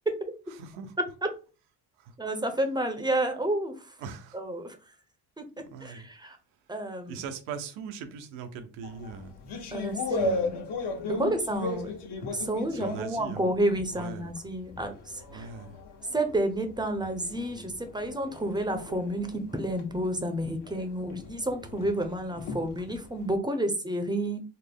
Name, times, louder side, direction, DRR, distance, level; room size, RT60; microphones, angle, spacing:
voice 1, 0.5-1.0 2.0-2.1 4.0-4.4 5.6-6.1 7.1-9.3 10.1-10.5 12.7-13.5 13.9-14.3 15.3-15.8, right 6 dB, 80° right, 0.8 m, -40 dB
voice 2, 2.2-3.7 4.3-4.8 5.4-5.5 5.8-6.4 6.7-7.2 9.7-10.6 11.2-11.9 12.3-15.5 16.1-24.4, right 1 dB, 10° right, 0.6 m, -30 dB
sound 1, 8.8-14.0 14.4-23.3, left 2 dB, 55° left, 1.2 m, -36 dB
4.2 x 2.0 x 3.4 m
supercardioid pair, 90°, 48 cm